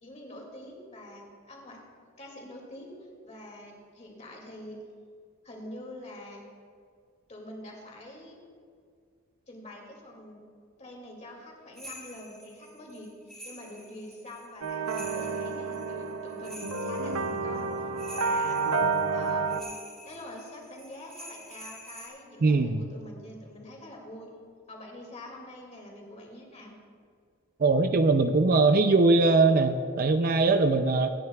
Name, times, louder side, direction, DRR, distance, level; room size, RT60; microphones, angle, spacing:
voice 1, 0.0-1.8 2.2-2.9 3.2-4.8 5.4-6.5 7.3-8.4 9.5-10.4 10.8-13.1 13.4-17.8 18.1-18.6 19.1-19.7 20.0-24.3 24.7-26.8, left 1 dB, 30° left, -1 dB, 2.4 m, -45 dB
sound 1, 11.8-22.1, equal, ahead, 3.0 m, -47 dB
sound 2, 14.6-19.6, right 4 dB, 75° right, 0.7 m, -30 dB
voice 2, 22.4-22.8 27.6-31.1, right 3 dB, 40° right, 8 dB, 0.5 m, -21 dB
25.5 x 9.6 x 2.4 m, 2.2 s
head